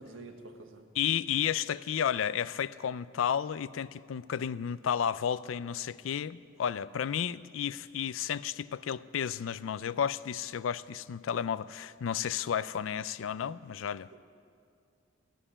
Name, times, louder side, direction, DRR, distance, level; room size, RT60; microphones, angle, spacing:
voice 1, 0.0-0.9 14.1-14.2, right 2 dB, 85° right, 1.3 m, -48 dB
voice 2, 1.0-14.1, left 8 dB, 80° left, 0.4 m, -32 dB
16.0 x 7.6 x 9.8 m
head